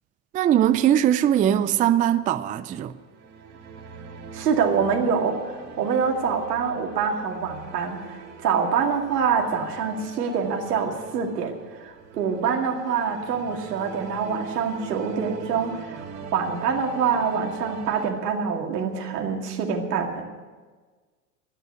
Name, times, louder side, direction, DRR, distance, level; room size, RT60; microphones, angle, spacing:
voice 1, 0.3-2.9, right 11 dB, 20° right, 0.3 m, -20 dB
sound 1, 2.7-18.1, right 6 dB, 35° right, 2.3 m, -42 dB
voice 2, 4.3-5.5 5.8-16.0 16.3-20.2, right 6 dB, 85° right, 2.3 m, -25 dB
11.5 x 9.9 x 9.5 m
hypercardioid pair, 95°, 46 cm